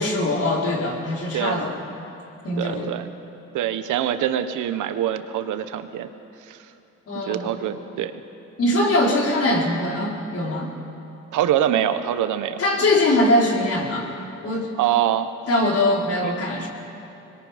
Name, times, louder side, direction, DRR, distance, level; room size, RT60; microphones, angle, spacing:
voice 1, 0.0-1.8 2.4-2.9 7.1-7.5 8.6-10.7 12.6-14.1 14.4-14.7 15.5-16.7, left 1 dB, 50° left, -2 dB, 4.5 m, -22 dB
voice 2, 1.3-1.7 2.6-3.1 3.5-6.1 6.4-6.7 7.1-8.1 11.3-12.6 14.8-15.3 16.2-16.4, right 11 dB, 85° right, 10 dB, 1.2 m, -24 dB
25.0 x 21.5 x 5.2 m, 3.0 s
cardioid pair, 90°, 30 cm